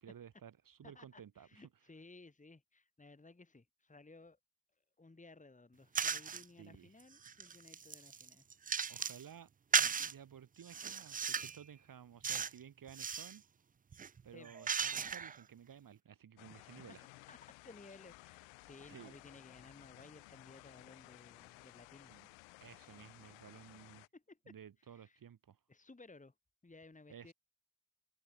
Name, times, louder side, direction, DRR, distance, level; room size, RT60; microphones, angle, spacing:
voice 1, 0.0-1.6 6.6-6.9 8.9-9.5 10.0-13.4 14.2-17.0 18.9-19.2 22.1-22.3 22.6-24.1 24.5-25.6 27.1-27.3, right 8 dB, 50° right, 1.3 m, -55 dB
voice 2, 0.8-4.4 5.0-8.4 14.3-14.7 16.5-17.0 17.3-22.1 24.1-24.5 24.9-25.2 25.7-26.3 26.6-27.3, left 3 dB, 15° left, 2.1 m, -58 dB
sound 1, 5.9-6.4 7.0-9.2 9.7-10.1 10.7-11.6 12.2-12.6 12.9-13.4 13.9-15.4, right 6 dB, 20° right, 0.4 m, -36 dB
sound 2, 16.4-24.1, left 27 dB, 85° left, 0.6 m, -58 dB
hypercardioid pair, 45°, 43 cm